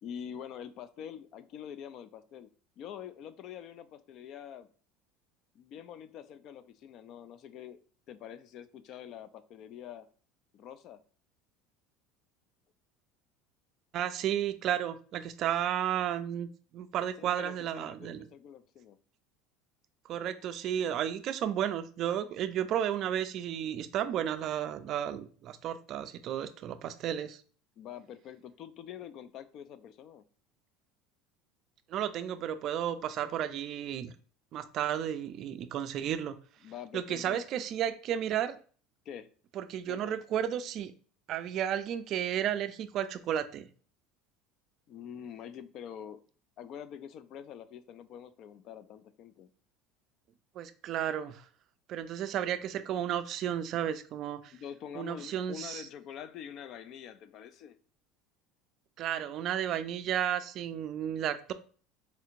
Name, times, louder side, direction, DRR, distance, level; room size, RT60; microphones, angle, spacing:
voice 1, 0.0-2.5 2.8-4.7 5.5-7.8 8.1-10.1 10.5-11.0 17.2-19.0 27.8-30.2 36.6-37.4 39.1-39.3 39.9-40.2 44.9-46.2 46.6-49.5 54.5-57.8, left 9 dB, 50° left, 13 dB, 0.3 m, -45 dB
voice 2, 13.9-18.3 20.1-27.4 31.9-34.1 34.5-36.4 36.9-38.6 39.6-40.9 41.3-43.7 50.6-51.4 51.9-54.5 55.0-55.9 59.0-61.5, right 10 dB, 45° right, 11 dB, 0.3 m, -33 dB
4.3 x 2.8 x 2.4 m, 0.42 s
supercardioid pair, 135°, 0 cm